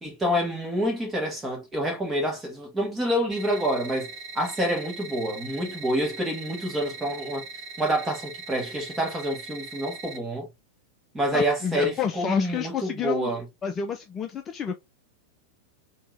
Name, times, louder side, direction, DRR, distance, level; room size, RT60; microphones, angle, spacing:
voice 1, 0.0-7.4 7.8-10.5 11.1-13.4, equal, 15° right, 1.8 m, -27 dB
sound 1, 3.3-10.2, right 4 dB, 40° right, 1.4 m, -41 dB
voice 2, 11.3-13.3 13.6-14.7, left 7 dB, 25° left, 0.5 m, -29 dB
3.6 x 2.9 x 3.5 m
figure-of-eight pair, 90°, 0 cm